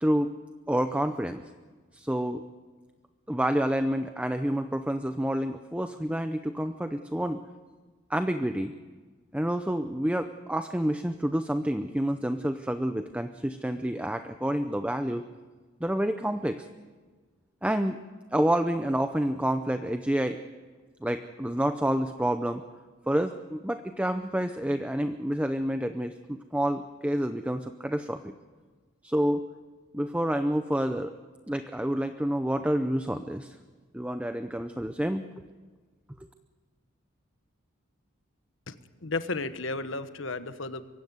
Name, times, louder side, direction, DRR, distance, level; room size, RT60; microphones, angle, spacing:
voice 1, 0.7-1.4 1.9-2.4 3.3-7.4 8.1-8.7 9.3-15.2 15.8-16.7 17.6-18.0 18.3-20.4 21.0-22.6 23.1-28.3 29.0-29.4 29.9-31.1 31.5-33.6 33.9-35.2, right 1 dB, 5° right, 0.6 m, -28 dB
voice 2, 39.0-40.8, left 3 dB, 75° left, 1.3 m, -33 dB
23.5 x 16.0 x 9.5 m
head